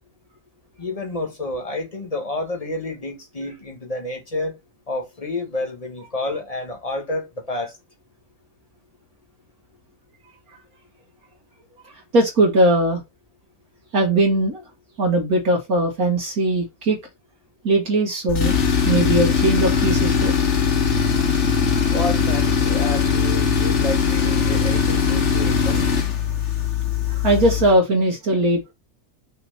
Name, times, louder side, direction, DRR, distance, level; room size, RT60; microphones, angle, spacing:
voice 1, 0.8-4.5 4.9-7.7 21.9-25.9, left 2 dB, 25° left, 1.3 m, -29 dB
voice 2, 12.1-13.0 13.9-14.6 15.0-17.0 17.6-20.3 27.1-28.7, right 1 dB, 70° right, 2.1 m, -20 dB
Tools, 18.3-27.8, left 6 dB, 50° left, 1.3 m, -20 dB
5.8 x 3.0 x 5.6 m
omnidirectional pair, 1.6 m